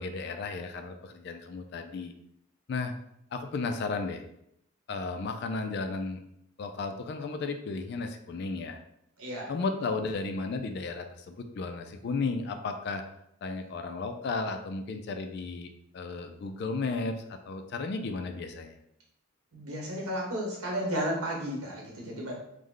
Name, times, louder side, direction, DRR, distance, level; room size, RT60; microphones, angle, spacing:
voice 1, 0.0-2.1 2.7-3.0 3.3-4.2 4.9-6.2 6.6-8.8 9.5-13.0 13.4-18.8, left 3 dB, 50° left, 6 dB, 0.3 m, -34 dB
voice 2, 9.2-9.5 19.5-22.3, equal, 90° right, -2 dB, 1.1 m, -33 dB
3.2 x 2.1 x 3.6 m, 0.77 s
head